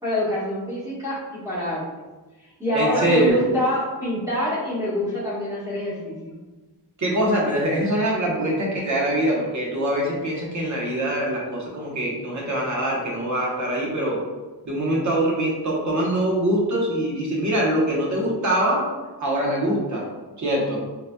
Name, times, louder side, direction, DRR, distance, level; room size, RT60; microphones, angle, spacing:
voice 1, 0.0-1.8 2.6-6.4, equal, 10° right, -9 dB, 1.3 m, -25 dB
voice 2, 2.7-3.4 7.0-14.2 14.6-18.9 19.2-20.1 20.4-20.8, right 1 dB, 45° right, -3 dB, 1.0 m, -23 dB
3.8 x 2.8 x 2.2 m, 1.2 s
wide cardioid pair, 130°, 40 cm